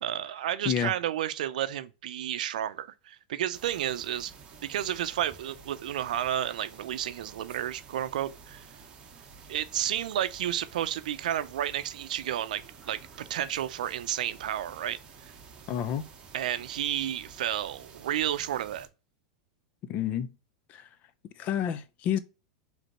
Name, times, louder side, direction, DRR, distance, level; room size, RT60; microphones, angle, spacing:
voice 1, 0.0-4.3 4.6-8.6 9.5-15.0 16.3-18.9, right 11 dB, 85° right, 0.5 m, -31 dB
sound 1, 3.5-18.9, right 5 dB, 25° right, 1.1 m, -51 dB
voice 2, 15.7-16.0 19.9-20.3 20.7-20.9 21.4-22.2, left 9 dB, 35° left, 0.5 m, -29 dB
5.2 x 3.3 x 2.9 m
supercardioid pair, 145°, 4 cm